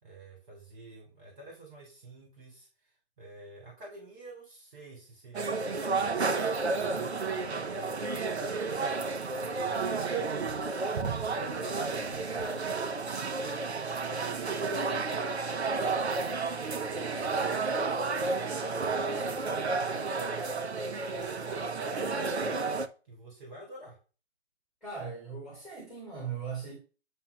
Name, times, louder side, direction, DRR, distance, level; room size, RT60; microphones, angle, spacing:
voice 1, 0.0-24.0, right 1 dB, 40° right, 3.6 m, -49 dB
sound 1, 5.3-22.9, right 4 dB, 70° right, 1.2 m, -31 dB
voice 2, 24.8-26.8, right 6 dB, ahead, 2.1 m, -38 dB
9.8 x 3.3 x 6.0 m
figure-of-eight pair, 145°, 33 cm